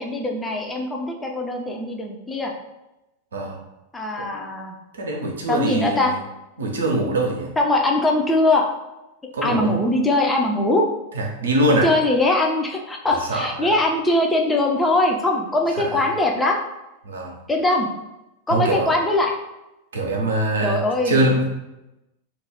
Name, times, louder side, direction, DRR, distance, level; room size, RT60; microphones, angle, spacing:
voice 1, 0.0-2.5 3.9-4.8 5.5-6.1 7.6-8.7 9.4-10.9 11.7-16.6 17.5-17.9 18.5-19.3 20.6-21.4, left 2 dB, 10° left, 1 dB, 0.5 m, -21 dB
voice 2, 5.0-6.2 6.6-7.5 9.3-9.7 11.1-11.9 13.1-13.7 15.8-16.0 17.0-17.4 18.5-18.9 19.9-21.5, right 1 dB, 70° right, 0 dB, 0.6 m, -23 dB
2.4 x 2.2 x 3.4 m, 0.95 s
figure-of-eight pair, 90°, 0 cm